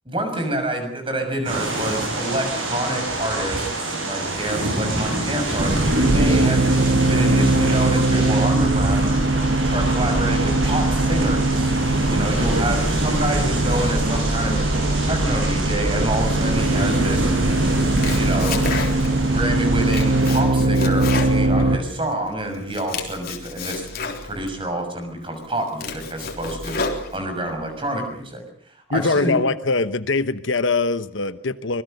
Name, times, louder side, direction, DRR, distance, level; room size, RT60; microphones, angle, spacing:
voice 1, 0.1-9.2 9.6-11.7 12.1-14.6 15.0-17.3 18.1-18.6 19.2-23.9 24.2-26.8 27.1-28.4 28.9-29.4, right 1 dB, 25° right, 6 dB, 6.4 m, -27 dB
sound 1, 1.4-20.4, right 2 dB, 70° right, 7.8 m, -26 dB
sound 2, 5.6-21.8, right 2 dB, 50° right, 1.6 m, -21 dB
Domestic sounds home sounds, 17.7-19.3 19.6-22.2 22.5-24.5 25.1-25.2 25.6-27.5, left 3 dB, 45° left, 3.7 m, -31 dB
voice 2, 28.9-31.8, left 3 dB, 65° left, 12 dB, 1.0 m, -22 dB
26.0 x 21.0 x 6.7 m, 0.63 s
head